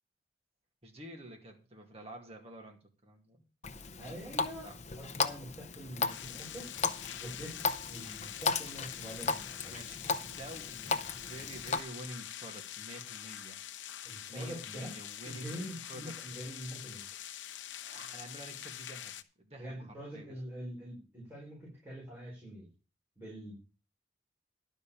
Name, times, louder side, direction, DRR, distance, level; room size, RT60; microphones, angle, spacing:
voice 1, 0.8-3.4 4.6-4.8 9.7-13.6 14.3-15.6 15.9-16.1 17.8-20.3, right 1 dB, 35° right, 2 dB, 2.3 m, -48 dB
Water tap faucet, 3.6-11.8, left 4 dB, 40° left, 0.7 m, -36 dB
voice 2, 3.9-6.7 7.2-9.7 14.0-15.0 15.2-17.0 19.6-22.7 23.2-23.6, equal, 15° right, -6 dB, 4.9 m, -45 dB
sound 1, 6.1-19.2, left 11 dB, 85° left, 0.7 m, -45 dB
11.5 x 5.5 x 7.0 m, 0.34 s
head